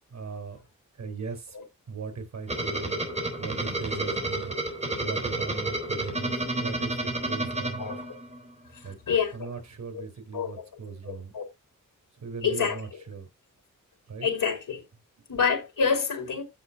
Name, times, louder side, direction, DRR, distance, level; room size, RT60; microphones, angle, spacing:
voice 1, 0.1-0.6 1.0-1.6 1.9-3.0 3.4-4.5 5.0-8.0 8.8-9.0 9.3-11.3 12.2-13.3 14.1-14.3, right 5 dB, 55° right, 3.8 m, -38 dB
sound 1, 2.5-8.5, right 2 dB, 20° right, 3.6 m, -31 dB
voice 2, 9.1-9.5 9.9-10.0 10.3-10.6 11.0-11.4 12.4-12.8 14.2-14.8 15.3-16.4, left 6 dB, 75° left, 4.5 m, -27 dB
15.5 x 5.2 x 2.7 m
wide cardioid pair, 135°, 33 cm